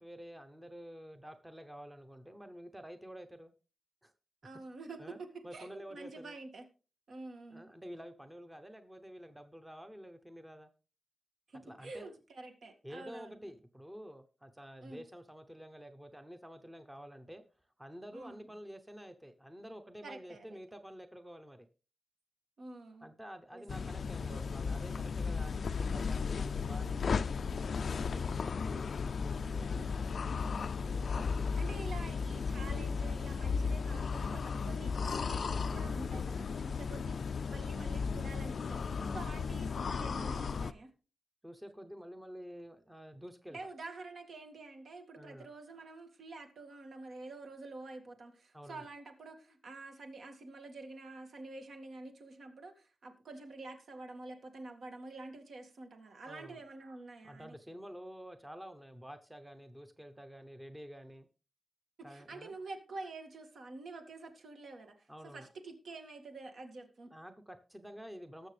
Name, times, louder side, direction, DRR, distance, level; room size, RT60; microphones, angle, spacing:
voice 1, 0.0-3.5 4.0-4.1 5.0-5.2 5.4-6.4 7.5-10.7 11.6-12.1 12.8-17.4 17.8-21.7 23.0-29.8 39.0-39.3 41.4-43.7 45.2-45.5 48.5-48.9 56.3-56.6 57.2-61.3 62.0-62.5 65.1-65.5 67.1-68.5, equal, 10° right, 0.8 m, -49 dB
voice 2, 4.4-6.6 7.1-7.7 11.5-13.5 14.8-15.0 18.1-18.5 20.0-20.6 22.6-23.1 23.5-23.6 24.3-24.4 29.5-29.9 30.8-40.9 43.5-57.5 62.0-67.1, right 3 dB, 70° right, 2.0 m, -48 dB
sound 1, 23.7-40.7, left 5 dB, 60° left, 0.4 m, -35 dB
20.0 x 6.8 x 3.3 m
wide cardioid pair, 160°, 0 cm